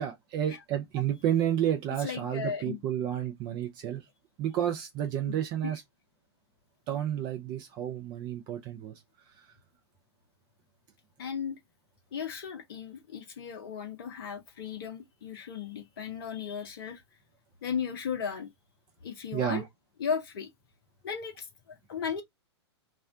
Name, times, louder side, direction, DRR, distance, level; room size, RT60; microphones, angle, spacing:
voice 1, 0.0-4.0 4.4-5.8 6.9-9.0 9.3-9.5 19.3-19.7, right 10 dB, 30° right, 0.5 m, -31 dB
voice 2, 2.0-2.8 5.3-5.7 11.2-11.6 12.1-17.0 17.6-18.5 19.0-19.6 20.0-20.5 21.0-22.2, left 7 dB, 55° left, 0.6 m, -36 dB
2.4 x 2.1 x 3.6 m
figure-of-eight pair, 105°, 15 cm